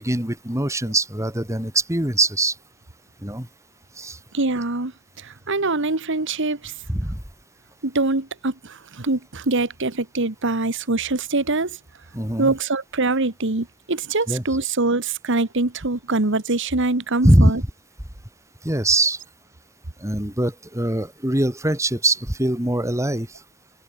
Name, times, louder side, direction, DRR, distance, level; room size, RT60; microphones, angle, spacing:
voice 1, 0.0-2.6 3.2-3.5 4.0-4.2 6.9-7.2 12.1-12.5 14.3-14.4 17.2-17.5 18.6-19.2 20.0-23.4, right 1 dB, 15° right, 2.8 m, -22 dB
voice 2, 4.3-4.9 5.2-6.7 7.8-11.8 12.4-17.6, right 2 dB, 60° right, 1.6 m, -24 dB
head